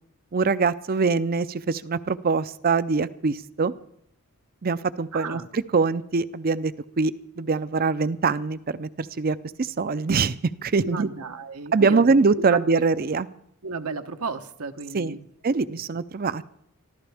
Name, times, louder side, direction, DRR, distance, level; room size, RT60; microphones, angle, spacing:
voice 1, 0.3-3.7 4.6-11.1 11.7-13.3 14.9-15.1 15.4-16.5, right 4 dB, 40° right, 15 dB, 0.5 m, -23 dB
voice 2, 5.1-5.5 10.8-12.2 12.5-12.6 13.6-15.3 15.7-15.8, right 4 dB, 85° right, 7 dB, 1.1 m, -33 dB
25.0 x 14.5 x 3.5 m, 0.75 s
head